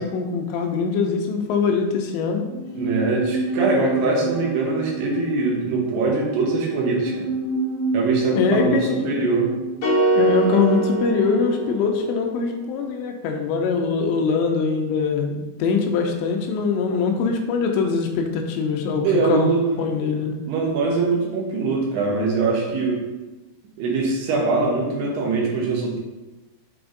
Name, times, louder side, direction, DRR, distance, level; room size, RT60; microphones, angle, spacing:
voice 1, 0.0-2.5 8.4-9.1 10.1-20.3, left 5 dB, 85° left, 2 dB, 2.8 m, -23 dB
sound 1, 2.5-11.8 12.1-12.2, right 3 dB, 90° right, 3.2 m, -29 dB
voice 2, 2.7-7.3 7.9-9.5 19.0-19.6 20.0-20.1 20.5-23.0 23.8-26.0, right 3 dB, 70° right, -1 dB, 3.0 m, -22 dB
sound 2, 9.8-12.1, right 2 dB, 50° left, 1.4 m, -22 dB
7.9 x 3.4 x 3.9 m, 1.1 s
omnidirectional pair, 5.3 m